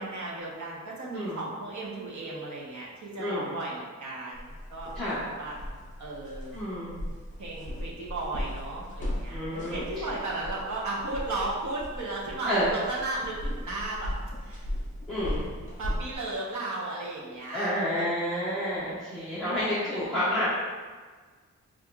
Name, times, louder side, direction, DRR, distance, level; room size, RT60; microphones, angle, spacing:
voice 1, 0.0-5.5 6.0-6.6 7.4-14.1 14.4-14.7 15.8-18.0 19.8-20.1, right 2 dB, 75° right, -4 dB, 0.9 m, -35 dB
voice 2, 3.2-3.6 4.9-5.2 6.5-6.9 9.3-10.1 12.4-12.7 15.1-15.5 17.5-20.5, equal, ahead, -15 dB, 1.1 m, -29 dB
sound 1, 4.3-16.2, left 1 dB, 25° left, 1.1 m, -37 dB
6.1 x 2.5 x 2.3 m, 1.5 s
wide cardioid pair, 175°, 29 cm